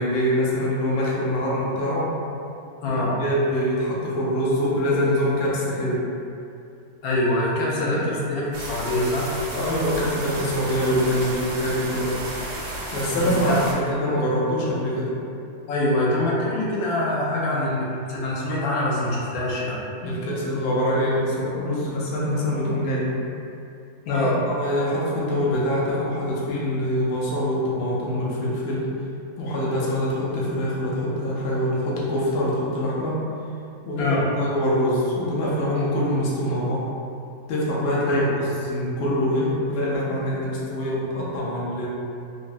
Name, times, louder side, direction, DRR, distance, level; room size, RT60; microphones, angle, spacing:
voice 1, 0.0-2.1 2.9-6.0 7.8-8.0 9.5-12.2 12.9-15.1 20.0-23.2 24.1-28.9 29.4-33.2 33.9-36.9 37.5-41.9, equal, 60° left, -6 dB, 0.6 m, -24 dB
voice 2, 2.8-3.2 7.0-9.3 13.1-13.6 15.7-19.8 24.1-24.4 34.0-34.2 38.1-38.4, left 1 dB, 80° left, -5 dB, 1.1 m, -24 dB
sound 1, 8.5-13.7, right 1 dB, 70° right, 1.0 m, -33 dB
3.3 x 2.0 x 2.5 m, 2.6 s
omnidirectional pair, 1.6 m